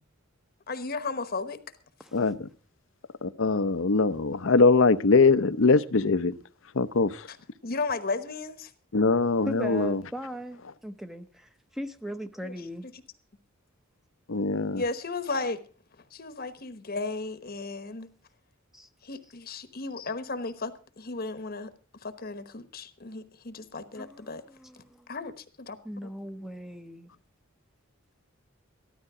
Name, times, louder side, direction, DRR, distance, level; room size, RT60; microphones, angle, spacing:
voice 1, 0.7-1.6 7.3-7.4 7.6-8.7 12.4-12.5 12.8-13.0 14.8-15.6 16.1-18.1 19.0-21.7 22.0-24.4 24.8-24.9 25.1-25.8, left 3 dB, 45° left, 1.1 m, -34 dB
voice 2, 2.1-2.5 3.2-6.4 6.7-7.3 8.9-10.0 14.3-14.8, left 4 dB, 65° left, 0.7 m, -22 dB
voice 3, 9.5-12.9 18.7-18.9 24.0-25.1 25.8-27.1, equal, ahead, 0.8 m, -38 dB
14.0 x 12.5 x 4.9 m
head